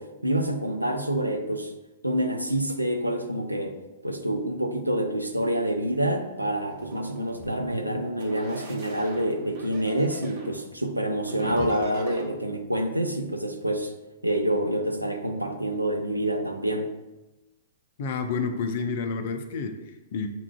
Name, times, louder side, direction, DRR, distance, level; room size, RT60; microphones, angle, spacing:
voice 1, 0.0-1.7 2.0-3.7 4.0-13.9 14.2-16.9, right 1 dB, 85° right, 5 dB, 0.4 m, -27 dB
sound 1, 6.7-7.5 8.2-10.6 11.2-12.2, right 2 dB, 50° right, 0.8 m, -39 dB
voice 2, 18.0-20.3, left 5 dB, 50° left, 7 dB, 0.4 m, -30 dB
7.1 x 2.4 x 2.2 m, 1.0 s
figure-of-eight pair, 105°, 0 cm